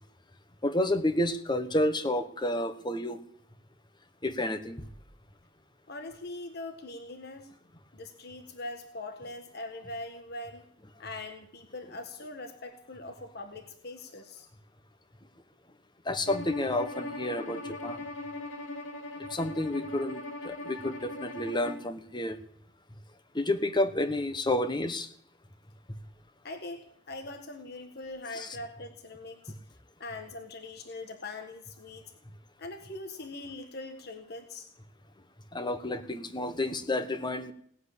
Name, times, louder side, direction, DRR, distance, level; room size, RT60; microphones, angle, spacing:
voice 1, 0.6-3.2 4.2-4.9 16.0-18.1 19.3-22.4 23.3-25.1 28.3-28.6 35.5-37.5, left 1 dB, 20° left, 10 dB, 1.3 m, -30 dB
voice 2, 5.9-7.5 7.9-10.6 11.0-14.5 26.4-29.5 30.0-32.0 32.6-34.7, left 2 dB, 50° left, 5 dB, 1.6 m, -42 dB
Bowed string instrument, 16.3-21.9, left 2 dB, 75° left, 2.9 m, -40 dB
18.0 x 8.0 x 9.9 m, 0.65 s
head